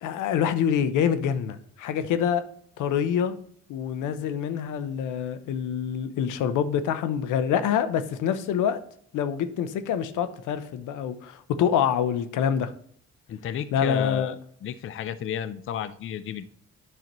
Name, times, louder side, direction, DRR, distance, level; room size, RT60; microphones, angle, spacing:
voice 1, 0.0-2.4 2.8-3.3 3.7-8.8 9.1-12.7 13.7-14.3, left 8 dB, 85° left, 12 dB, 0.7 m, -26 dB
voice 2, 13.3-14.4 14.6-16.5, left 9 dB, 45° left, 15 dB, 0.5 m, -33 dB
9.4 x 5.8 x 3.0 m, 0.62 s
cardioid pair, 90°, 30 cm